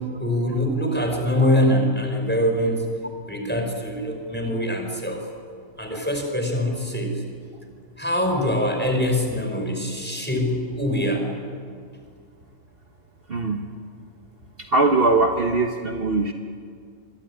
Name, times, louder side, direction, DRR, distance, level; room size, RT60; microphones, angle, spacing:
voice 1, 0.0-2.8 3.2-5.3 5.8-7.2 8.0-11.3, equal, 5° left, 3 dB, 5.4 m, -23 dB
voice 2, 13.3-13.6 14.6-16.3, right 3 dB, 45° right, 3 dB, 1.6 m, -21 dB
25.5 x 23.5 x 9.9 m, 2.1 s
omnidirectional pair, 1.4 m